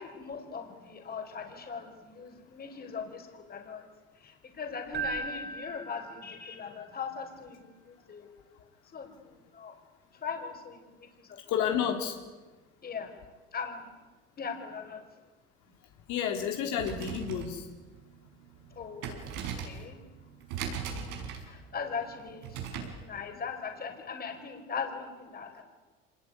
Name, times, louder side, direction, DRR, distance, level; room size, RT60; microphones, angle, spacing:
voice 1, 0.0-3.8 4.2-8.3 8.9-9.8 10.1-11.4 12.8-13.1 13.5-13.9 14.4-15.0 18.7-20.0 21.4-25.6, left 5 dB, 30° left, 4 dB, 4.8 m, -40 dB
Keyboard (musical), 4.9-6.8, right 4 dB, 35° right, 4.3 m, -38 dB
voice 2, 11.5-12.2 16.1-17.7, left 8 dB, 75° left, 3 dB, 3.7 m, -30 dB
sound 1, 16.7-23.0, right 7 dB, 85° right, 5.8 m, -40 dB
26.0 x 20.5 x 9.9 m, 1.3 s
cardioid pair, 120°, 29 cm